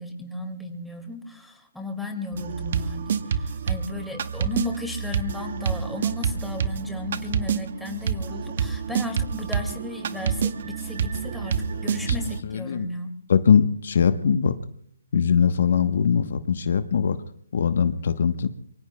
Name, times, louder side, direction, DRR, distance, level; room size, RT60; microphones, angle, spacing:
voice 1, 0.0-13.1, left 2 dB, ahead, 4 dB, 2.0 m, -35 dB
sound 1, 2.3-12.4, right 6 dB, 50° right, 0.9 m, -28 dB
voice 2, 11.9-12.9 13.3-14.6 15.1-17.2 17.5-18.5, left 6 dB, 60° left, 10 dB, 0.9 m, -21 dB
25.0 x 23.5 x 2.2 m, 0.66 s
hypercardioid pair, 155°, 0 cm